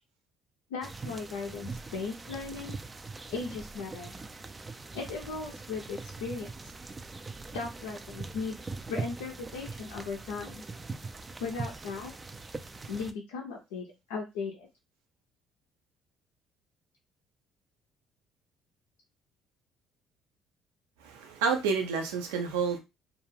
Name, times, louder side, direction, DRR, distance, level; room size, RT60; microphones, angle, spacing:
voice 1, 0.7-2.8 3.3-4.2 4.9-6.5 7.5-8.6 8.9-10.6 11.4-12.1 12.9-14.7, left 4 dB, 80° left, 0.4 m, -37 dB
sound 1, 0.8-13.1, right 3 dB, 25° right, 0.3 m, -42 dB
voice 2, 21.0-22.8, right 5 dB, 75° right, 0.5 m, -29 dB
2.3 x 2.2 x 3.2 m
hypercardioid pair, 55°, 0 cm